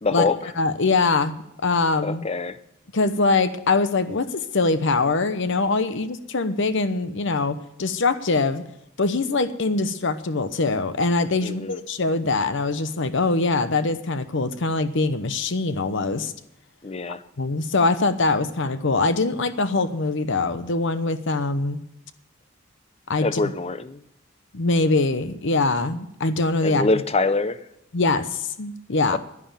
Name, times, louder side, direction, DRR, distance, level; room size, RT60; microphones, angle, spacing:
voice 1, 0.0-0.4 2.0-2.6 11.4-11.8 16.8-17.2 23.2-24.0 26.6-27.6 29.1-29.2, left 3 dB, 30° left, 13 dB, 0.7 m, -24 dB
voice 2, 0.6-2.2 2.9-8.6 9.0-16.3 17.4-21.8 23.1-23.5 24.5-26.9 27.9-29.2, left 3 dB, 65° left, 12 dB, 0.9 m, -23 dB
11.0 x 10.5 x 7.4 m, 0.82 s
head